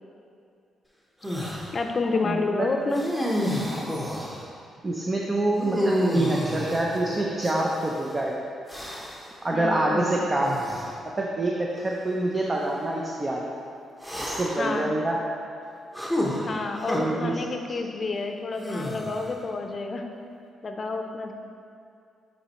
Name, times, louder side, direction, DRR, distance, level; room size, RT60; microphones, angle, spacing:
sound 1, 1.2-1.7 2.9-4.5 5.6-7.9 8.7-9.3 10.4-10.9 11.8-11.9 14.0-14.7 15.9-17.0 18.6-19.4, equal, 5° right, 1.0 m, -30 dB
voice 1, 1.7-3.0 9.5-10.1 14.6-14.9 16.4-20.0 20.6-21.3, left 3 dB, 45° left, 4 dB, 0.6 m, -29 dB
voice 2, 2.2-2.7 4.8-8.4 9.4-10.5 11.2-13.5 14.2-15.2 16.9-17.4, right 2 dB, 30° right, -2 dB, 0.6 m, -26 dB
8.5 x 4.2 x 3.1 m, 2.4 s
cardioid pair, 70°, 0 cm